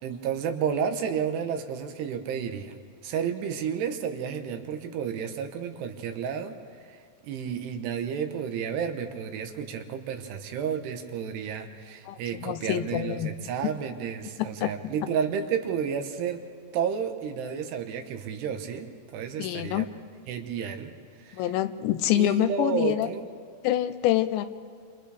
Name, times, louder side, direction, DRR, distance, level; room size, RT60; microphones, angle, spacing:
voice 1, 0.0-2.8 3.0-6.5 6.9-7.0 7.2-16.4 16.7-19.9 20.3-20.9 21.2-21.5 22.2-23.2, right 7 dB, 75° right, 6 dB, 3.1 m, -31 dB
voice 2, 12.1-13.3 14.6-14.7 19.4-19.9 21.3-23.1 23.6-24.5, left 13 dB, 90° left, 11 dB, 3.0 m, -26 dB
29.5 x 26.0 x 3.4 m, 2.3 s
omnidirectional pair, 5.0 m